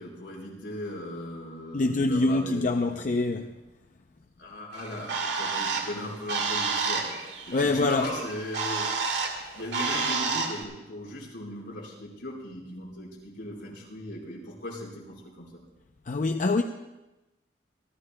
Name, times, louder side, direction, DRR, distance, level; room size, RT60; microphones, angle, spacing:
voice 1, 0.0-2.7 4.4-9.3 9.5-15.6, left 1 dB, 75° left, 4.7 m, -38 dB
voice 2, 1.7-3.5 7.5-8.1 16.1-16.6, left 2 dB, 45° left, 0.5 m, -25 dB
Bird, 4.7-10.6, right 4 dB, 70° right, 1.9 m, -30 dB
28.0 x 13.0 x 2.2 m
head